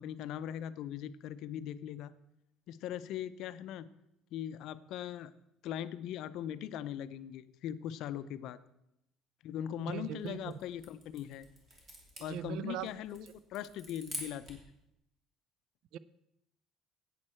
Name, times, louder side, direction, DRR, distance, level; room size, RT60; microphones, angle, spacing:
voice 1, 0.0-2.1 2.7-3.9 4.3-5.3 5.6-8.6 9.4-11.5 12.2-14.6, left 10 dB, 60° left, 14 dB, 0.5 m, -40 dB
voice 2, 9.8-10.5 12.3-12.9 15.9-16.0, right 10 dB, 65° right, 18 dB, 0.4 m, -39 dB
sound 1, 10.0-14.7, equal, 20° right, 2.6 m, -48 dB
11.0 x 8.7 x 4.4 m, 0.83 s
cardioid pair, 150°, 0 cm